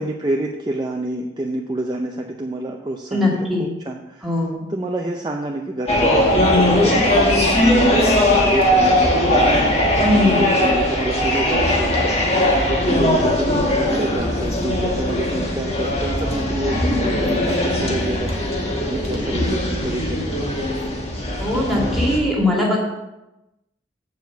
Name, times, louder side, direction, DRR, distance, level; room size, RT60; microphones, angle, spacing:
voice 1, 0.0-4.4 4.7-12.2 12.7-18.3 18.6-20.4, right 1 dB, 25° right, 1 dB, 0.5 m, -28 dB
voice 2, 3.1-3.7 4.2-4.7 10.0-10.4 21.4-22.8, left 1 dB, ahead, -4 dB, 2.1 m, -20 dB
sound 1, 5.9-22.2, left 1 dB, 35° left, 1.4 m, -19 dB
7.9 x 4.7 x 6.9 m, 0.96 s
head